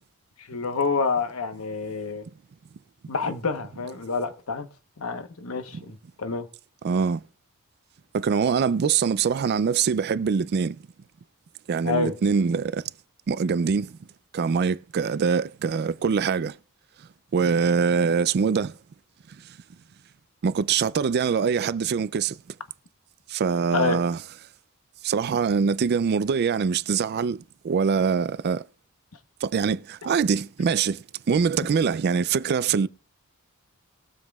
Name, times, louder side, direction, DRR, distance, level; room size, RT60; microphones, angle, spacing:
voice 1, 0.4-2.2 3.1-4.7 5.0-6.5 11.8-12.1 23.7-24.0, left 4 dB, 80° left, 1.0 m, -28 dB
voice 2, 6.8-7.2 8.1-10.8 11.7-12.8 13.3-13.9 14.3-16.5 17.3-18.7 20.4-22.4 23.3-24.2 25.0-28.6 29.4-32.9, right 6 dB, 50° right, 0.4 m, -23 dB
21.5 x 7.4 x 2.3 m
head